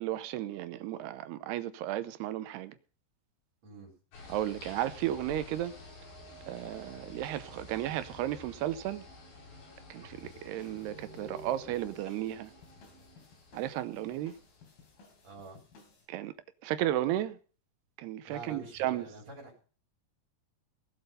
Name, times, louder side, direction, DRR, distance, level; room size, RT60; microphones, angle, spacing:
voice 1, 0.0-2.7 4.3-5.7 6.5-9.0 9.9-12.5 13.5-14.3 16.1-16.3 16.6-17.4 18.0-19.1, right 13 dB, 80° right, 2.8 m, -34 dB
sound 1, 4.1-15.7, left 2 dB, 85° left, 7.4 m, -51 dB
sound 2, 6.3-13.2, right 2 dB, 20° right, 1.7 m, -55 dB
sound 3, 10.2-16.1, left 4 dB, 65° left, 4.8 m, -59 dB
voice 2, 15.2-15.6 18.3-19.6, right 2 dB, 40° right, 5.1 m, -47 dB
18.0 x 7.9 x 5.4 m
omnidirectional pair, 4.9 m